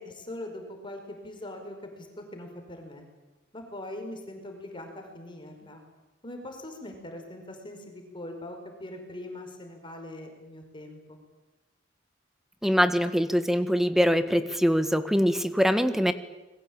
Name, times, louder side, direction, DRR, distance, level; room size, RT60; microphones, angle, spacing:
voice 1, 0.0-3.0 3.5-5.8 6.2-11.2, left 1 dB, 25° left, 4 dB, 5.3 m, -41 dB
voice 2, 12.6-16.1, equal, ahead, 10 dB, 1.6 m, -23 dB
29.5 x 22.0 x 8.9 m, 1.1 s
head